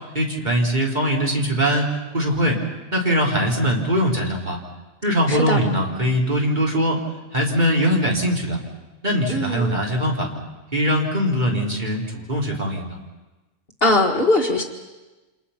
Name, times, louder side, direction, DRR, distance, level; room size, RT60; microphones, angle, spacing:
voice 1, 0.1-2.6 2.9-4.6 5.0-7.0 7.3-8.6 9.0-10.3 10.7-13.0, equal, 35° right, -1 dB, 4.1 m, -21 dB
voice 2, 5.3-5.6 9.3-9.8 13.8-14.6, left 2 dB, 45° left, 2 dB, 2.1 m, -20 dB
30.0 x 27.0 x 5.8 m, 1.1 s
omnidirectional pair, 1.4 m